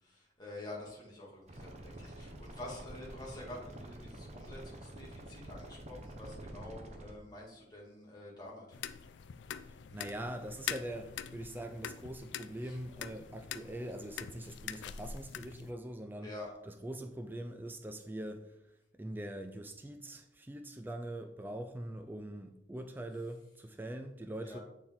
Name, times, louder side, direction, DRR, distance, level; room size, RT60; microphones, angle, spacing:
voice 1, 0.0-8.8 12.6-12.8 16.2-16.5 24.4-24.6, left 1 dB, 25° left, 1.9 m, -48 dB
sound 1, 1.5-7.2, right 1 dB, 40° right, 0.9 m, -48 dB
sound 2, 8.7-15.7, left 8 dB, 80° left, 0.4 m, -44 dB
voice 2, 9.6-16.3 16.7-24.6, right 1 dB, 10° right, 0.4 m, -43 dB
8.0 x 4.4 x 3.7 m
head